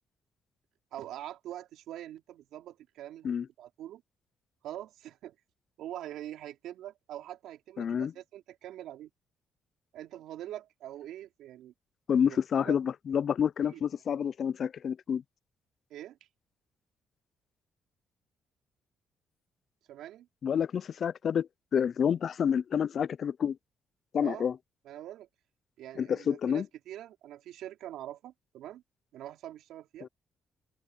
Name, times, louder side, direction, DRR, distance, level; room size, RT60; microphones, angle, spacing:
voice 1, 0.9-3.3 3.6-4.0 4.6-5.4 5.8-9.1 9.9-11.7 12.3-12.8 13.7-13.8 15.9-16.3 19.9-20.3 24.2-24.5 24.8-25.3 25.8-28.8 29.1-30.1, right 12 dB, 85° right, 3.4 m, -44 dB
voice 2, 7.8-8.1 12.1-15.2 20.4-23.6 24.1-24.5 26.0-26.7 30.0-30.1, left 8 dB, 55° left, 0.5 m, -28 dB
cardioid pair, 90°, 0 cm